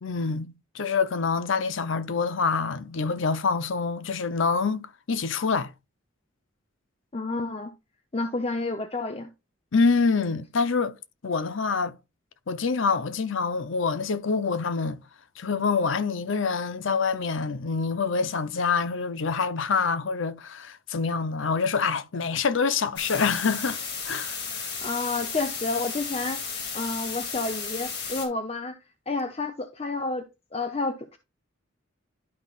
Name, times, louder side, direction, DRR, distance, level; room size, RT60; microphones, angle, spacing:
voice 1, 0.0-5.7 9.7-11.0 11.2-11.9 12.5-15.0 15.4-23.8 24.1-24.4, left 5 dB, 70° left, 0.7 m, -26 dB
voice 2, 7.1-7.7 8.1-9.3 24.8-26.4 26.7-28.8 29.1-31.2, left 3 dB, 30° left, 0.7 m, -30 dB
sound 1, 23.0-28.3, left 5 dB, 55° left, 2.4 m, -34 dB
12.0 x 5.3 x 2.4 m
head